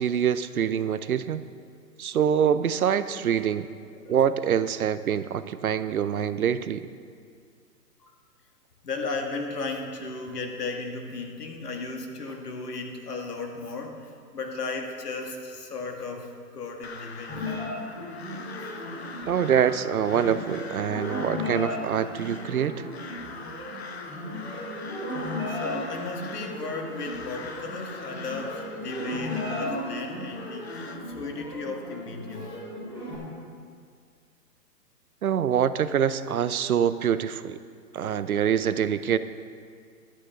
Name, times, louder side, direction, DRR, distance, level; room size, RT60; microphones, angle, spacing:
voice 1, 0.0-1.4 2.0-3.7 4.1-6.9 19.3-22.9 35.2-37.6 37.9-39.2, right 8 dB, 65° right, 13 dB, 0.6 m, -25 dB
voice 2, 3.1-3.5 3.9-4.2 8.0-8.1 8.8-17.5 25.5-32.5 33.2-33.3, left 3 dB, 70° left, 2 dB, 2.1 m, -35 dB
Crow, 16.8-31.0, left 4 dB, 40° left, 0.8 m, -43 dB
sound 1, 17.3-33.1, left 1 dB, 10° left, 3.8 m, -35 dB
14.5 x 11.5 x 3.7 m, 2.1 s
hypercardioid pair, 175°, 48 cm